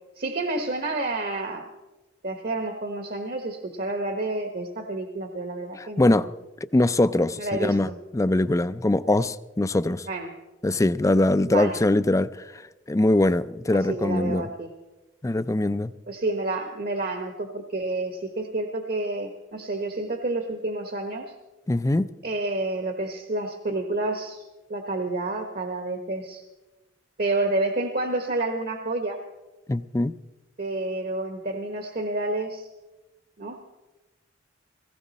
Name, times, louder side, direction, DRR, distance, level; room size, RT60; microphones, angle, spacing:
voice 1, 0.2-1.7 2.2-6.3 7.4-8.0 10.1-10.3 11.5-11.8 13.7-14.7 16.1-21.3 22.2-24.4 24.7-26.4 27.2-29.2 30.6-32.7 33.4-33.6, right 2 dB, 55° right, 5 dB, 1.2 m, -29 dB
voice 2, 5.8-6.3 6.7-10.1 10.6-12.4 12.9-14.5 15.2-15.9 21.7-22.1 29.7-30.1, left 2 dB, 15° left, 14 dB, 0.4 m, -22 dB
18.5 x 16.0 x 4.2 m, 1.1 s
head